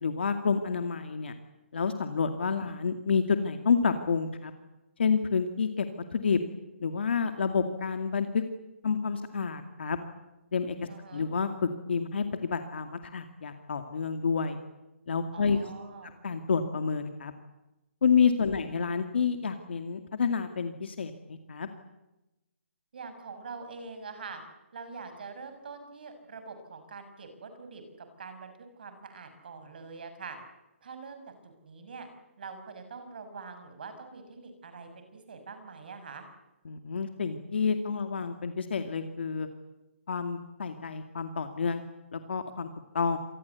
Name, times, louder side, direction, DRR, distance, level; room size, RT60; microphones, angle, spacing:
voice 1, 0.0-1.3 1.7-4.5 5.0-5.9 6.1-6.4 6.8-8.4 8.8-10.0 10.5-10.8 11.1-11.5 11.9-14.6 15.1-15.6 16.2-17.3 18.0-21.7 36.7-39.5 40.1-41.8 42.1-42.7 42.9-43.2, left 5 dB, 55° left, 7 dB, 2.3 m, -29 dB
voice 2, 10.9-11.3 15.3-16.1 18.4-18.8 22.9-24.4 24.7-28.5 28.8-30.4 30.8-32.1 32.4-36.2, right 4 dB, 45° right, 8 dB, 6.0 m, -44 dB
27.0 x 20.5 x 8.3 m, 0.97 s
hypercardioid pair, 175°, 7 cm